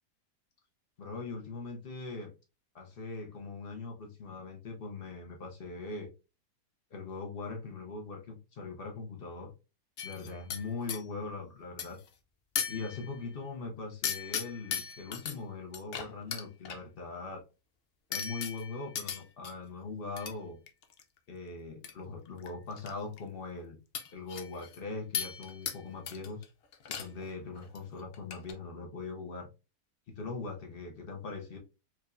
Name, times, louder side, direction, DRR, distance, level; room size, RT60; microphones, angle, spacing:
voice 1, 1.0-2.3 2.7-6.1 6.9-9.5 10.0-12.0 12.7-17.4 18.1-20.6 21.3-23.8 24.1-26.4 26.9-29.5 30.2-31.6, left 3 dB, 50° left, 2 dB, 0.8 m, -41 dB
sound 1, 10.0-11.0 11.8-12.1 12.6-13.3 14.0-15.3 15.7-16.8 18.1-19.5 20.2-20.3 20.7-21.0 21.8-21.9 22.3-22.9 23.2-23.3 23.9-24.8 25.1-25.8 26.1-26.4 26.7-27.3 27.6-27.8 28.1-28.5, left 7 dB, 80° left, 0.5 m, -37 dB
4.7 x 2.2 x 2.5 m, 0.30 s
omnidirectional pair, 1.7 m